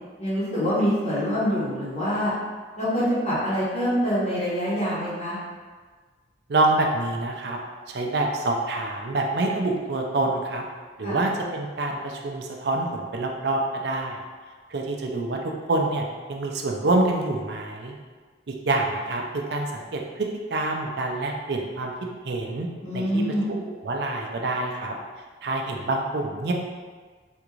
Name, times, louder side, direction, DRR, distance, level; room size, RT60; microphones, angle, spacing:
voice 1, 0.2-2.3 2.8-5.4 11.0-11.2 22.8-23.6, equal, 35° left, -10 dB, 1.0 m, -25 dB
voice 2, 6.5-7.6 7.9-10.6 11.0-14.2 14.7-15.4 15.7-18.0 18.5-19.2 19.5-21.9 22.2-22.7 22.9-24.9 25.4-26.5, right 2 dB, 60° right, 1 dB, 0.4 m, -26 dB
3.5 x 2.5 x 3.0 m, 1.5 s
head